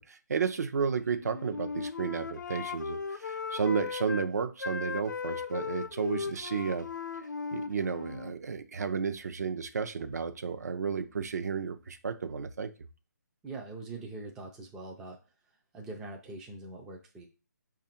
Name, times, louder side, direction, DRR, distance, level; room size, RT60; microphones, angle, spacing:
voice 1, 0.0-6.9 7.5-12.7, right 6 dB, 60° right, 8 dB, 0.6 m, -32 dB
Wind instrument woodwind instrument, 1.2-4.3 4.6-8.4, left 5 dB, 80° left, 0.4 m, -37 dB
voice 2, 13.4-15.2 15.7-17.2, right 2 dB, 5° right, 0 dB, 0.3 m, -43 dB
5.0 x 2.5 x 4.2 m, 0.33 s
hypercardioid pair, 155°, 10 cm